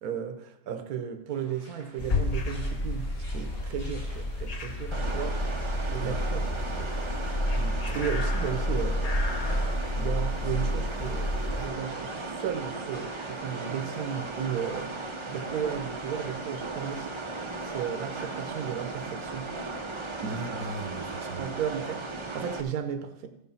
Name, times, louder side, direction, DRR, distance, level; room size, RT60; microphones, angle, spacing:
voice 1, 0.0-6.5 6.8-6.9 7.9-9.2 10.0-14.9 15.3-17.1 17.6-19.5 20.2-20.4 21.3-23.3, right 8 dB, 65° right, 1.2 m, -34 dB
sound 1, 1.3-15.9, left 1 dB, 45° left, 3.0 m, -54 dB
sound 2, 2.0-11.7, left 1 dB, 70° left, 0.3 m, -30 dB
sound 3, 4.9-22.6, right 3 dB, 35° right, 0.4 m, -37 dB
voice 2, 7.5-8.1 20.2-21.5, right 2 dB, 85° right, 1.5 m, -38 dB
13.5 x 4.9 x 5.5 m
omnidirectional pair, 1.8 m